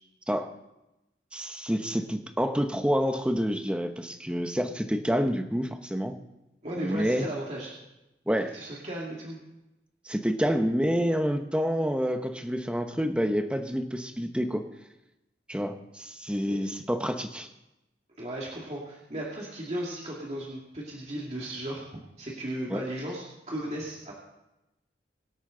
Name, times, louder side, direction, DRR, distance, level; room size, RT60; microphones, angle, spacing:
voice 1, 1.3-6.1 6.8-7.3 8.3-8.5 10.0-14.6 15.5-17.5 22.7-22.8, equal, 5° right, 6 dB, 0.9 m, -28 dB
voice 2, 6.6-7.7 8.5-9.4 16.5-16.6 18.2-21.8 22.2-24.1, right 1 dB, 40° right, -4 dB, 2.4 m, -36 dB
23.5 x 8.3 x 3.8 m, 0.93 s
head